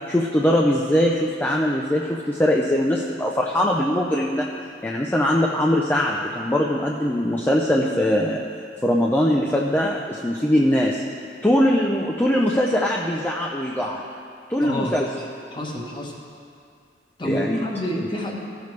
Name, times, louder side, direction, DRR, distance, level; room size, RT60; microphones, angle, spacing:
voice 1, 0.1-4.5 4.8-8.4 8.8-11.0 11.4-14.0 14.5-15.1 17.2-17.6, left 1 dB, 10° left, -2 dB, 0.5 m, -21 dB
voice 2, 14.6-15.0 15.5-16.2 17.2-18.4, equal, 25° left, -1 dB, 1.1 m, -28 dB
15.0 x 6.7 x 3.2 m, 2.4 s
head